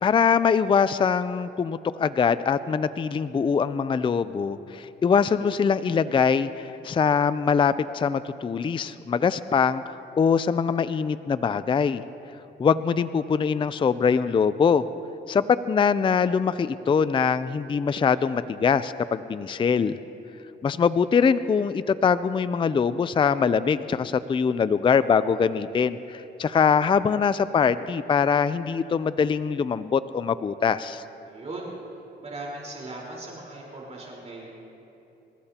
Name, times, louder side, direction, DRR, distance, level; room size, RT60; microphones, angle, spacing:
voice 1, 0.0-12.0 12.6-14.8 15.3-20.0 20.6-31.0, left 6 dB, 25° left, 14 dB, 0.4 m, -23 dB
voice 2, 31.2-31.7 32.2-34.5, right 2 dB, 35° right, -4 dB, 4.1 m, -38 dB
27.0 x 15.0 x 2.9 m, 3.0 s
cardioid pair, 90°, 20 cm